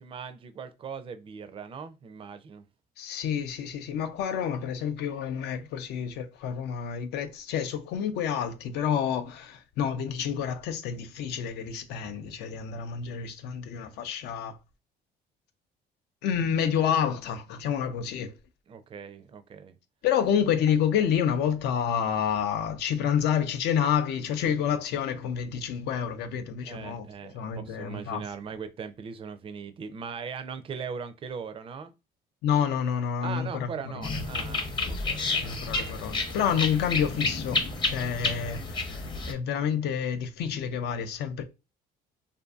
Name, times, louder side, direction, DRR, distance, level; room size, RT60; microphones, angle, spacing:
voice 1, 0.0-2.6 18.7-19.8 26.6-31.9 33.2-35.6, right 6 dB, 30° right, 0.4 m, -39 dB
voice 2, 3.0-14.6 16.2-18.3 20.0-27.1 27.3-28.2 32.4-34.2 35.4-39.0 39.3-41.4, left 8 dB, 80° left, 0.5 m, -29 dB
sound 1, 34.0-39.3, left 3 dB, 30° left, 0.6 m, -30 dB
2.6 x 2.5 x 2.3 m
cardioid pair, 110°, 17 cm